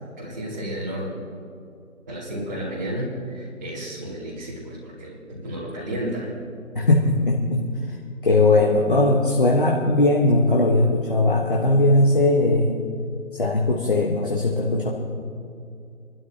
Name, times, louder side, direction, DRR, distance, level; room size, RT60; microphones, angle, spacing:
voice 1, 0.2-1.1 2.1-6.3, right 1 dB, 15° right, -11 dB, 1.9 m, -32 dB
voice 2, 6.7-7.7 8.2-12.8 13.3-14.9, left 2 dB, 40° left, 0 dB, 1.3 m, -19 dB
26.5 x 12.5 x 2.8 m, 2.4 s
figure-of-eight pair, 165°, 42 cm